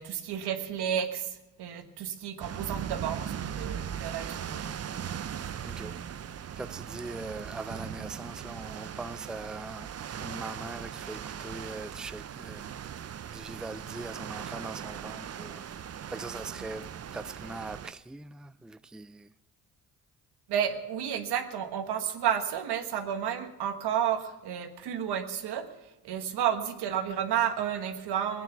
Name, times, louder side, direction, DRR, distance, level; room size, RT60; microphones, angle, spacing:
voice 1, 0.0-4.7 20.5-28.4, right 9 dB, 85° right, 1.4 m, -31 dB
sound 1, 2.4-17.9, right 9 dB, 40° right, 0.6 m, -39 dB
voice 2, 5.6-6.1 6.6-13.1 13.3-19.3, right 3 dB, ahead, 0.4 m, -41 dB
19.0 x 9.3 x 7.0 m
cardioid pair, 70°, 38 cm